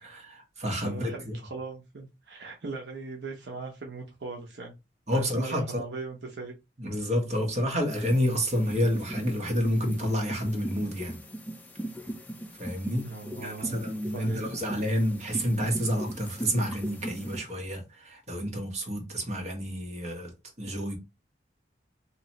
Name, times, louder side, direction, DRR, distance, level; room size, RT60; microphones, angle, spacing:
voice 1, 0.0-1.2 5.1-5.8 6.8-11.2 12.6-13.0 13.4-20.3 20.6-21.0, equal, 35° right, 1.2 m, -29 dB
voice 2, 0.8-4.7 5.1-6.5 13.0-14.6, right 3 dB, 65° right, 0.8 m, -39 dB
sound 1, 7.9-17.4, right 1 dB, 10° left, 0.5 m, -39 dB
3.0 x 2.8 x 4.1 m
head